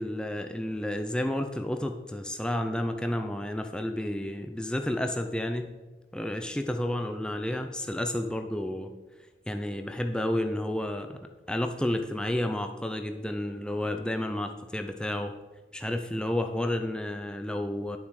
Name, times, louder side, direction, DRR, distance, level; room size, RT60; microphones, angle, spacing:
voice 1, 0.0-5.7 6.1-8.9 9.5-11.2 11.5-15.3 15.7-18.0, left 1 dB, 5° left, 5 dB, 0.5 m, -31 dB
11.0 x 7.1 x 4.8 m, 1.2 s
head